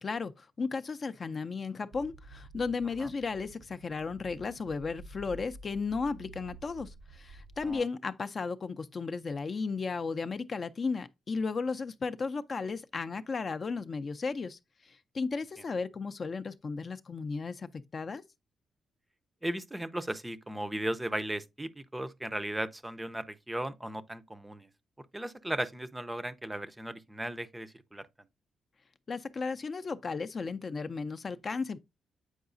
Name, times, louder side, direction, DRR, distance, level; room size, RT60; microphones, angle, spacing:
voice 1, 0.0-18.2 29.1-31.8, left 4 dB, 40° left, 0.4 m, -35 dB
sound 1, 1.9-7.8, right 2 dB, 60° right, 0.7 m, -51 dB
voice 2, 19.4-24.7 25.1-28.0, right 1 dB, 10° right, 0.5 m, -36 dB
8.0 x 4.7 x 2.5 m
cardioid pair, 105°, 0 cm